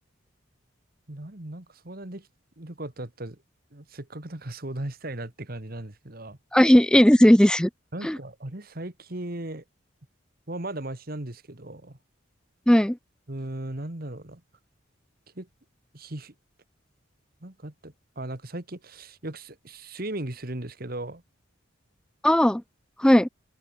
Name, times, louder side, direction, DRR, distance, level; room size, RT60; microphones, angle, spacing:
voice 1, 1.1-2.3 2.6-3.4 3.7-6.4 7.9-9.6 10.5-12.0 13.3-14.4 15.4-15.5 15.9-16.3 17.4-21.2, right 1 dB, 45° right, 1.9 m, -37 dB
voice 2, 6.5-7.7 8.0-8.2 12.7-13.0 22.2-22.6 23.0-23.3, equal, 5° left, 0.4 m, -17 dB
open air
head